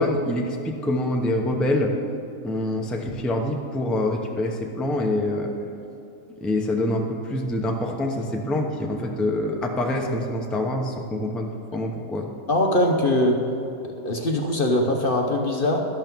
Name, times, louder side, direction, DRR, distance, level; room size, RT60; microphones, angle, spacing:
voice 1, 0.0-1.9 2.4-5.5 6.4-12.3, left 1 dB, ahead, 1 dB, 0.7 m, -25 dB
voice 2, 12.5-13.4 14.0-15.8, left 1 dB, 45° left, 2 dB, 0.9 m, -21 dB
12.5 x 11.5 x 3.6 m, 2.8 s
omnidirectional pair, 1.5 m